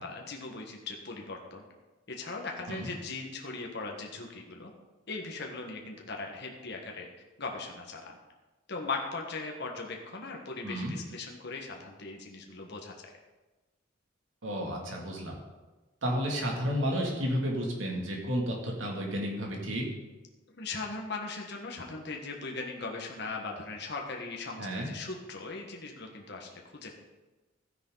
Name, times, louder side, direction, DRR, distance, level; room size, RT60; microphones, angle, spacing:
voice 1, 0.0-1.6 2.1-4.7 5.1-7.1 7.4-8.2 8.7-13.1 20.5-26.9, left 3 dB, 55° left, 1 dB, 1.5 m, -39 dB
voice 2, 14.4-15.4 16.0-19.8 24.6-24.9, equal, 75° right, -1 dB, 2.6 m, -32 dB
13.5 x 9.9 x 4.0 m, 1.2 s
head